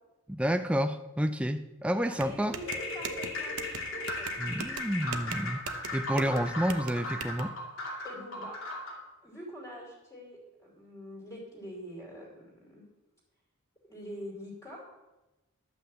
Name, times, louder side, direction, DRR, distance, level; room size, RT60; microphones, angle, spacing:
voice 1, 0.3-2.5 4.4-5.6 5.9-7.5, equal, 5° right, 0.4 m, -29 dB
voice 2, 2.0-2.7 2.9-4.3 8.0-8.6 9.2-12.9 13.9-14.8, equal, 15° left, 2.8 m, -45 dB
sound 1, 2.2-7.4, right 6 dB, 90° right, 0.8 m, -41 dB
sound 2, 2.6-9.0, left 2 dB, 70° left, 2.4 m, -37 dB
11.0 x 5.7 x 7.4 m
head